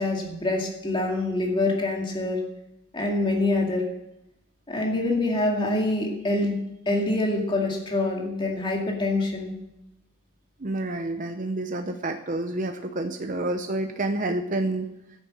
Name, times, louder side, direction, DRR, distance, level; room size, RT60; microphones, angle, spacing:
voice 1, 0.0-2.4 2.9-3.9 4.7-6.6 6.9-9.5, left 2 dB, 25° left, 0 dB, 2.2 m, -25 dB
voice 2, 10.6-14.9, right 2 dB, 40° right, 6 dB, 0.8 m, -29 dB
10.5 x 9.4 x 7.7 m, 0.86 s
head